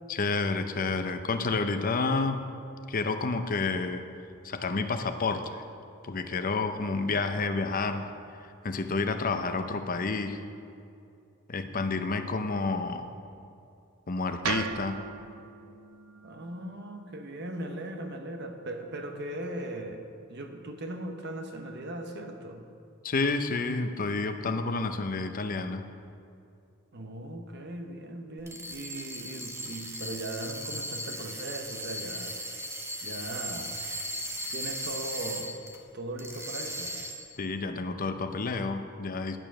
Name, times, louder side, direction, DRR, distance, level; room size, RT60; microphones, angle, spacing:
voice 1, 0.1-2.4 2.9-4.0 4.4-5.6 6.0-10.4 11.5-13.1 14.1-15.0 23.0-25.8 37.4-39.4, left 3 dB, 40° left, 8 dB, 0.6 m, -30 dB
sound 1, 14.4-18.6, right 6 dB, 90° right, 0.6 m, -39 dB
voice 2, 16.2-20.0 20.3-22.6 26.9-32.4 33.0-33.8 34.5-35.6 35.9-36.9, right 1 dB, 55° right, 5 dB, 1.0 m, -38 dB
sound 2, 28.4-35.8 36.2-37.4, right 1 dB, 15° right, 0.9 m, -37 dB
11.0 x 6.9 x 6.1 m, 2.5 s
head